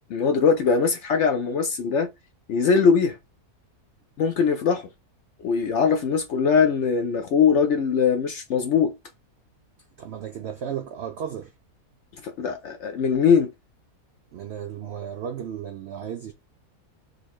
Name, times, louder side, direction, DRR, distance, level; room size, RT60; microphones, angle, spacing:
voice 1, 0.1-2.1 2.5-3.2 4.2-4.9 5.4-8.9 12.2-13.5, left 6 dB, 70° left, 0.7 m, -21 dB
voice 2, 10.0-11.5 14.3-16.3, right 8 dB, 80° right, 0.6 m, -34 dB
3.8 x 2.7 x 3.1 m
omnidirectional pair, 1.6 m